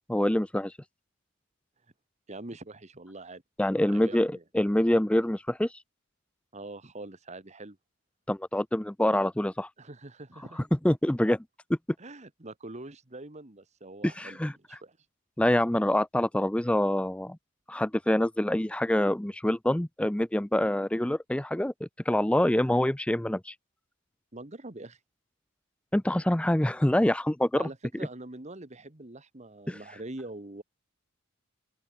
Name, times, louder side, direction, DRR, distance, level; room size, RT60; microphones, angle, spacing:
voice 1, 0.1-0.7 3.6-5.7 8.3-9.7 10.7-11.4 11.7-11.8 14.0-14.5 15.4-17.4 17.7-23.5 25.9-27.7 29.7-29.8, left 1 dB, 5° left, 0.4 m, -26 dB
voice 2, 2.3-3.4 3.9-4.4 6.5-7.8 9.8-10.7 12.0-15.0 24.3-25.0 27.6-30.6, right 2 dB, 35° right, 1.7 m, -44 dB
open air
head